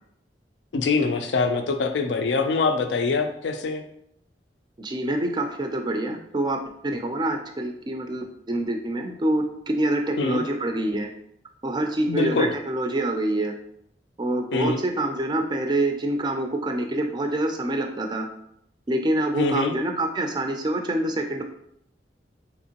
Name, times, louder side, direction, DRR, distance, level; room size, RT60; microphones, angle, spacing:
voice 1, 0.7-3.8 10.2-10.4 12.1-12.5 14.5-14.8 19.3-19.7, left 4 dB, 85° left, 6 dB, 0.4 m, -24 dB
voice 2, 4.8-11.1 11.6-13.5 14.2-18.3 18.9-21.4, right 1 dB, 25° right, 4 dB, 0.4 m, -26 dB
3.5 x 2.9 x 2.8 m, 0.72 s
head